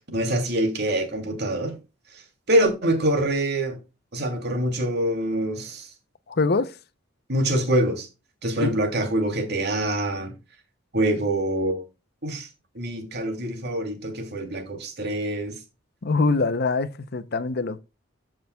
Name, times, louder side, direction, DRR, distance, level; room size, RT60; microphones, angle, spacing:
voice 1, 0.1-1.8 2.5-3.8 4.1-5.9 7.3-8.1 8.4-10.3 10.9-11.8 12.2-12.5 12.7-15.5, right 1 dB, 55° right, 2.9 m, -25 dB
voice 2, 6.4-6.7 8.6-8.7 16.0-17.8, left 3 dB, 55° left, 0.7 m, -23 dB
14.0 x 6.1 x 2.3 m
head